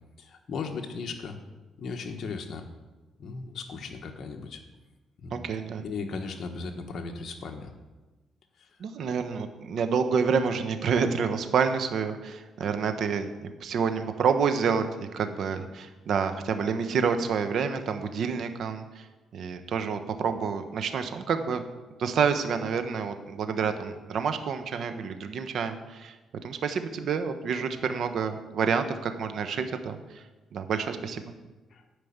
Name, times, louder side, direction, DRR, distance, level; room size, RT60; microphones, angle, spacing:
voice 1, 0.2-1.4 1.8-2.6 3.2-4.6 5.2-5.4 5.8-7.7 8.6-8.7 31.7-31.8, left 4 dB, 55° left, 3 dB, 1.3 m, -36 dB
voice 2, 5.3-5.8 8.8-13.3 13.6-19.1 19.3-21.6 22.0-26.1 26.4-30.2 30.5-31.3, right 6 dB, 65° right, 8 dB, 1.1 m, -28 dB
11.5 x 5.3 x 8.8 m, 1.2 s
cardioid pair, 90°, 0 cm